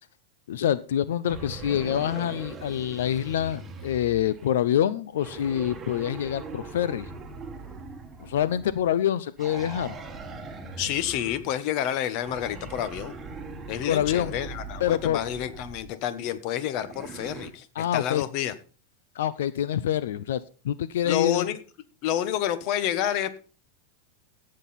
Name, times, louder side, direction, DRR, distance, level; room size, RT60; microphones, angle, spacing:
voice 1, 0.5-7.1 8.2-10.0 13.9-14.4 14.8-15.2 17.8-18.2 19.1-20.4 20.6-21.5, left 10 dB, 85° left, 16 dB, 0.6 m, -26 dB
sound 1, 1.3-4.6 5.2-8.9 9.4-11.6 12.2-15.9 16.8-17.5, right 3 dB, 10° right, 1.6 m, -41 dB
voice 2, 10.8-13.1 13.7-17.7 17.9-18.5 21.0-21.6 22.0-23.4, left 11 dB, 45° left, 14 dB, 1.1 m, -29 dB
16.5 x 7.6 x 4.2 m, 0.38 s
supercardioid pair, 155°, 0 cm